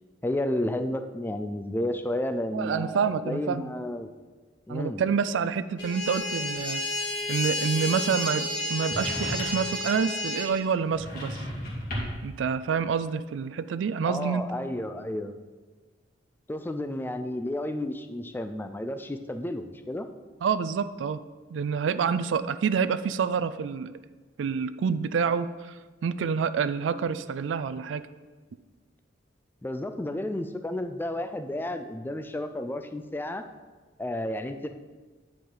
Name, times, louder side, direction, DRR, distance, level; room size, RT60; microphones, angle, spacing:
voice 1, 0.2-4.1 4.7-5.0 14.0-15.3 16.5-20.1 29.6-33.5 34.0-34.7, left 1 dB, 10° left, 8 dB, 0.3 m, -32 dB
voice 2, 2.5-3.6 4.7-6.8 7.3-11.4 12.2-14.4 20.4-21.2 21.5-23.9 24.4-25.7 26.0-28.1, right 6 dB, 75° right, 14 dB, 0.3 m, -27 dB
sound 1, 5.8-10.5, left 1 dB, 65° left, 2.0 m, -31 dB
sound 2, 8.9-9.8 10.9-12.3, equal, 50° left, 2.1 m, -34 dB
9.5 x 4.9 x 3.8 m, 1.4 s
head